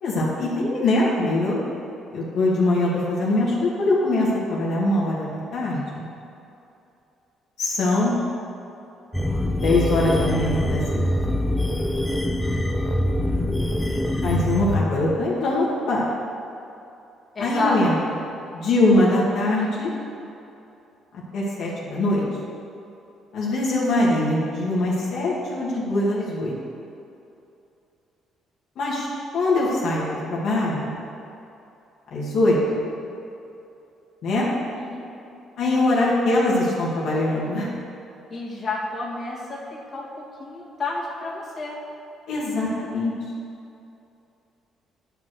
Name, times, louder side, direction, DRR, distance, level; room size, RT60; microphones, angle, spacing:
voice 1, 0.0-1.6 2.1-6.0 7.6-8.1 9.6-11.1 14.2-16.1 17.4-17.9 18.5-19.9 21.3-22.2 23.3-26.5 28.8-29.1 29.3-30.9 32.1-32.6 34.2-34.5 35.6-37.7 42.3-43.1, left 2 dB, 65° left, -6 dB, 2.2 m, -22 dB
sound 1, 9.1-14.8, left 1 dB, 5° left, 0.8 m, -24 dB
voice 2, 17.3-18.0 34.8-35.0 35.8-35.9 38.3-39.6 39.9-40.1 40.4-41.8, left 2 dB, 35° left, -6 dB, 2.4 m, -29 dB
10.5 x 5.3 x 6.4 m, 2.7 s
cardioid pair, 105°, 0 cm